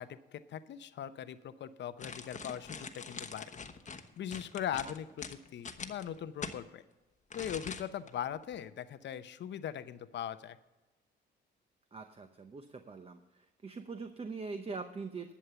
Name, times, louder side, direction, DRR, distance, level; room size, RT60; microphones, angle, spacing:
voice 1, 0.0-3.6 4.2-6.8 7.3-10.6, left 9 dB, 65° left, 12 dB, 0.8 m, -40 dB
sound 1, 2.0-6.6 7.3-8.1 8.4-8.6, left 5 dB, 40° left, 1.0 m, -43 dB
voice 2, 11.9-15.3, right 4 dB, 30° right, 7 dB, 0.8 m, -43 dB
11.5 x 7.4 x 6.9 m, 1.1 s
cardioid pair, 90°, 20 cm